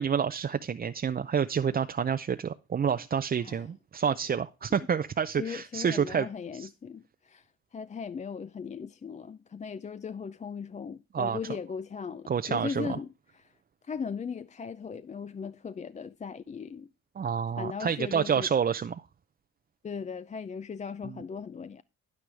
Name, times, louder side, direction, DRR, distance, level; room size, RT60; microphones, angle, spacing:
voice 1, 0.0-6.3 6.6-6.7 11.1-11.4 12.3-12.9 17.2-18.9 21.0-21.1, right 7 dB, 30° right, 0.5 m, -28 dB
voice 2, 5.4-13.5 13.8-16.9 17.6-18.5 19.8-21.8, left 6 dB, 25° left, 0.4 m, -38 dB
9.8 x 9.6 x 3.3 m
cardioid pair, 90°, 30 cm